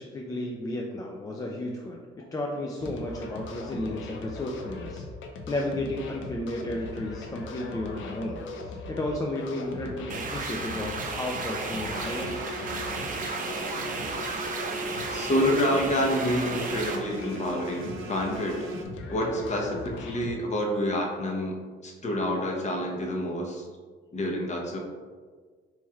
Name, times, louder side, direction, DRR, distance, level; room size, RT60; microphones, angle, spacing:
voice 1, 0.0-2.0 2.3-5.1 5.5-12.4, left 1 dB, 20° left, -1 dB, 0.4 m, -33 dB
sound 1, 2.8-20.3, left 3 dB, 75° left, 0.5 m, -40 dB
sound 2, 10.1-17.0, right 4 dB, 45° right, 0.6 m, -34 dB
sound 3, 11.9-18.8, right 1 dB, 85° right, 0.6 m, -38 dB
voice 2, 15.1-18.6 19.1-21.6 21.8-23.7 24.1-24.8, equal, 35° left, 0 dB, 0.8 m, -28 dB
3.1 x 3.1 x 3.4 m, 1.5 s
cardioid pair, 90°, 20 cm